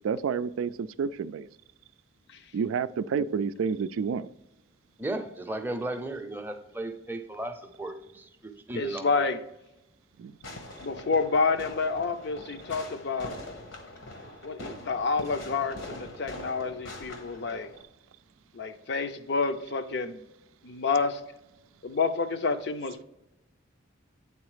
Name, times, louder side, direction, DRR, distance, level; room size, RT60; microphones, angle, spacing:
voice 1, 0.0-1.5 2.5-4.3 10.2-10.4, right 6 dB, 90° right, 14 dB, 0.3 m, -29 dB
voice 2, 5.0-8.0 8.4-9.3, right 1 dB, 10° right, 5 dB, 0.6 m, -35 dB
voice 3, 8.7-9.4 10.8-13.4 14.4-17.7 18.5-20.2 20.6-21.2 21.8-23.0, left 4 dB, 55° left, 9 dB, 0.5 m, -29 dB
Fireworks, 10.4-17.8, left 2 dB, 80° left, 1.3 m, -43 dB
8.6 x 4.0 x 4.8 m, 0.90 s
head